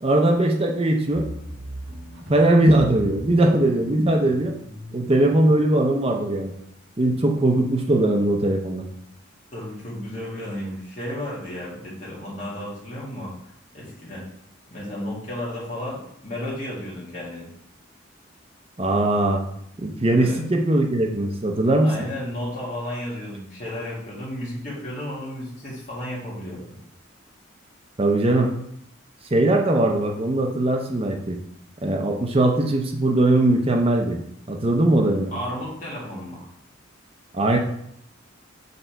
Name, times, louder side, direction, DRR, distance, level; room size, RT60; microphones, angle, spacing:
voice 1, 0.0-1.3 2.3-4.5 4.9-6.5 7.0-8.9 18.8-19.4 19.8-21.9 28.0-28.5 29.3-31.4 31.8-34.2 34.5-35.3 37.3-37.6, right 1 dB, 30° right, 2 dB, 0.7 m, -20 dB
sound 1, 1.0-6.0, equal, 90° right, 1.2 m, -39 dB
voice 2, 9.5-13.3 13.7-14.3 14.7-17.5 20.1-20.4 21.8-26.7 35.3-36.5, left 1 dB, 35° left, -6 dB, 2.0 m, -33 dB
6.7 x 3.9 x 4.5 m, 0.73 s
head